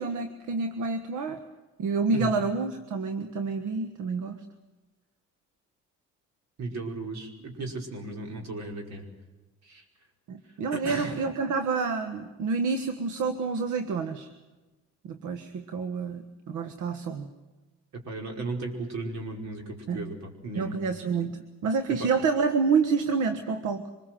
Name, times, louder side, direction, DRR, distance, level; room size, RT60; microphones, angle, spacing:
voice 1, 0.0-1.4 1.8-4.4 10.3-14.3 15.0-17.3 19.9-20.0 20.6-23.8, right 4 dB, 80° right, 8 dB, 1.5 m, -28 dB
voice 2, 6.6-9.0 9.6-9.8 10.7-11.1 17.9-20.7 22.0-22.1, right 2 dB, 65° right, 2 dB, 5.0 m, -35 dB
25.0 x 21.5 x 7.7 m, 1.1 s
cardioid pair, 90°, 30 cm